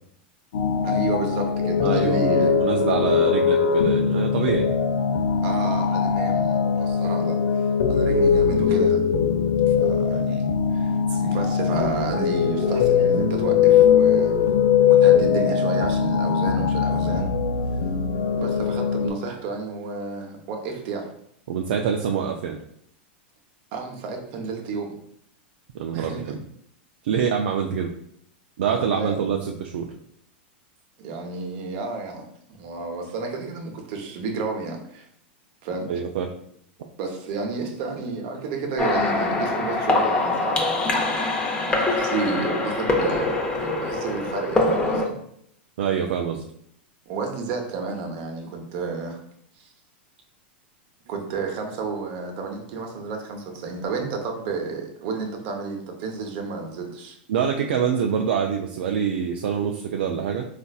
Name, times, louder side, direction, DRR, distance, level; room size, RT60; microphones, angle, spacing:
sound 1, 0.5-19.1, left 7 dB, 70° left, 0.5 m, -21 dB
voice 1, 0.8-2.6 5.4-7.4 7.9-9.1 9.7-14.3 14.9-17.4 18.4-21.1 23.7-25.0 25.9-26.4 28.6-29.3 31.0-35.1 35.6-35.9 37.0-41.0 41.5-45.2 47.1-49.2 49.6-49.7 51.1-57.2, right 4 dB, 55° right, 2 dB, 0.8 m, -31 dB
voice 2, 1.8-4.7 11.1-11.2 21.5-22.6 25.7-26.4 27.0-27.9 28.6-29.9 35.9-36.3 45.8-46.4 57.3-60.5, right 7 dB, 75° right, 2 dB, 0.3 m, -25 dB
sound 2, 38.8-45.1, left 2 dB, 20° left, 0.6 m, -24 dB
3.9 x 2.5 x 2.3 m, 0.70 s
hypercardioid pair, 105°, 6 cm